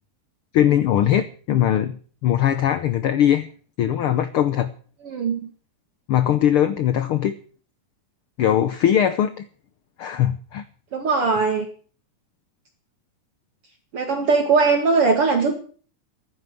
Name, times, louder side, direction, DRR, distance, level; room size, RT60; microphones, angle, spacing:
voice 1, 0.5-1.9 2.2-3.5 3.8-4.7 6.1-7.4 8.4-9.5 10.0-10.6, left 10 dB, 75° left, 13 dB, 1.3 m, -20 dB
voice 2, 5.0-5.5 10.9-11.7 13.9-15.5, right 4 dB, 50° right, 4 dB, 2.6 m, -20 dB
15.0 x 11.0 x 7.6 m, 0.43 s
omnidirectional pair, 3.5 m